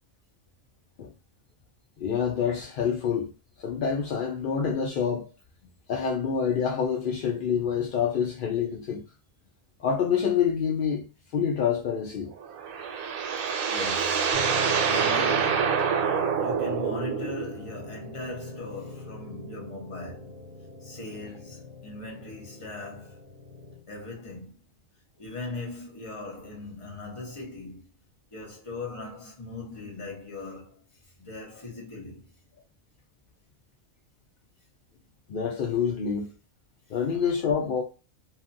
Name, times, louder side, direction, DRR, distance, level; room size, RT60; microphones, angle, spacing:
voice 1, 2.0-3.3 3.6-5.3 5.9-9.0 9.8-11.1 11.3-12.3 35.3-36.3 36.9-37.8, left 7 dB, 70° left, 0.5 m, -27 dB
sound 1, 12.4-17.6, right 7 dB, 85° right, 1.0 m, -26 dB
voice 2, 13.7-14.4 14.9-16.1 16.4-20.4 20.8-23.2 23.9-24.6 25.2-27.8 28.3-30.8 31.2-32.3, left 3 dB, 25° left, 0.8 m, -39 dB
sound 2, 14.3-23.8, left 2 dB, 15° right, 0.6 m, -41 dB
2.7 x 2.4 x 2.5 m
omnidirectional pair, 1.4 m